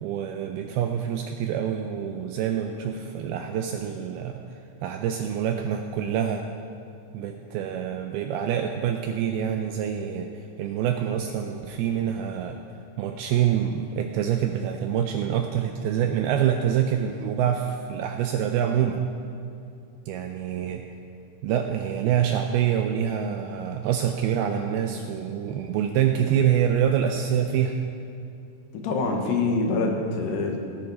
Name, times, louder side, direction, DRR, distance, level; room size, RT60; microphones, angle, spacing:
voice 1, 0.0-4.4 4.8-6.4 7.1-12.6 13.0-19.0 20.1-20.8 21.4-27.8, right 9 dB, 90° right, 4 dB, 2.2 m, -26 dB
voice 2, 28.7-30.6, left 3 dB, 75° left, 1 dB, 3.4 m, -25 dB
18.5 x 10.0 x 4.1 m, 2.5 s
omnidirectional pair, 5.0 m